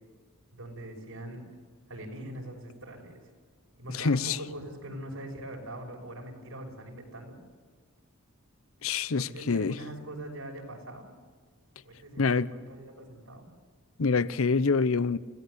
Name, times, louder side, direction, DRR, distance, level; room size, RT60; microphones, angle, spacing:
voice 1, 0.5-1.4 1.9-3.3 3.8-7.4 9.1-11.1 11.8-13.4, right 1 dB, 80° right, 6.0 m, -42 dB
voice 2, 3.9-4.4 8.8-9.7 12.2-12.5 14.0-15.2, left 4 dB, 75° left, 0.8 m, -26 dB
29.5 x 17.0 x 8.1 m
head